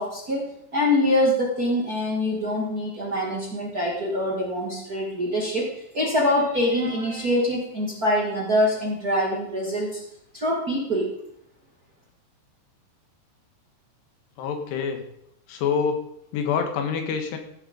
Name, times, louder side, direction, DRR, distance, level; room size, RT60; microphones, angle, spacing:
voice 1, 0.0-10.0 10.3-11.1, left 1 dB, 40° right, -3 dB, 1.2 m, -24 dB
voice 2, 14.4-15.0 15.5-16.0 16.3-17.4, left 6 dB, 70° left, 5 dB, 3.5 m, -26 dB
16.0 x 8.0 x 5.3 m, 0.75 s
omnidirectional pair, 5.3 m